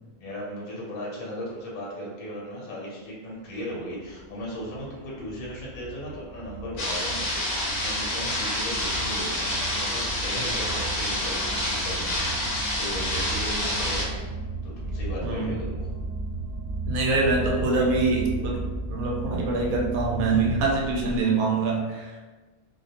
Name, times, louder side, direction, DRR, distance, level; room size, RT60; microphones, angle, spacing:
voice 1, 0.2-14.2 14.6-15.9, equal, 90° left, -4 dB, 1.2 m, -37 dB
sound 1, 3.9-21.2, right 2 dB, 40° right, 0.6 m, -35 dB
sound 2, 6.8-14.0, left 1 dB, 55° left, 0.7 m, -28 dB
voice 2, 16.9-18.6 18.9-22.1, right 3 dB, 80° right, -2 dB, 1.0 m, -24 dB
2.3 x 2.1 x 2.7 m, 1.3 s
omnidirectional pair, 1.5 m